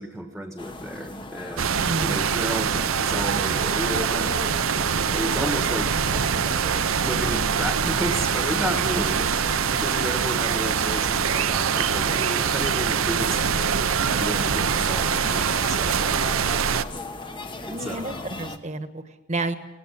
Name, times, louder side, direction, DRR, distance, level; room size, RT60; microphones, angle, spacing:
voice 1, 0.0-4.4 5.1-5.9 7.0-9.2 9.7-16.1 17.8-18.2, equal, ahead, 4 dB, 1.4 m, -32 dB
sound 1, 0.6-18.6, left 2 dB, 25° left, 1.1 m, -37 dB
sound 2, 1.6-16.8, right 7 dB, 75° right, 0.7 m, -24 dB
voice 2, 1.8-2.4 8.8-9.0 17.7-19.5, right 2 dB, 35° right, 10 dB, 1.2 m, -31 dB
17.5 x 17.5 x 9.8 m, 1.1 s
head